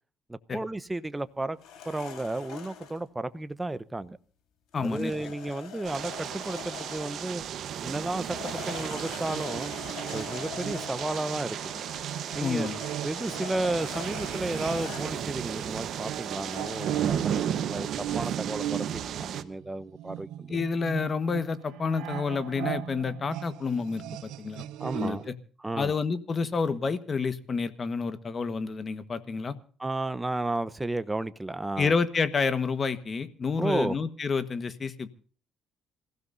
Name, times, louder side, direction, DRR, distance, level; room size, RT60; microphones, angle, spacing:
voice 1, 0.3-1.6 1.8-4.2 4.8-7.4 7.8-9.7 10.1-11.8 12.3-12.7 13.0-20.6 24.8-25.2 25.6-25.9 29.8-31.9 33.6-34.0, right 2 dB, 10° right, 13 dB, 0.9 m, -33 dB
sound 1, 1.6-3.0 4.7-7.3 8.1-15.3 16.2-17.5, left 8 dB, 75° left, 4.2 m, -43 dB
voice 2, 4.7-5.1 12.4-12.8 20.5-24.6 24.9-25.3 25.8-29.6 31.8-35.1, left 5 dB, 35° left, 12 dB, 1.4 m, -29 dB
sound 2, 5.8-19.4, right 9 dB, 60° right, 1.1 m, -34 dB
sound 3, 9.3-15.0 15.3-25.3, right 13 dB, 85° right, 0.7 m, -38 dB
27.5 x 16.0 x 2.7 m, 0.43 s
cardioid pair, 110°, 0 cm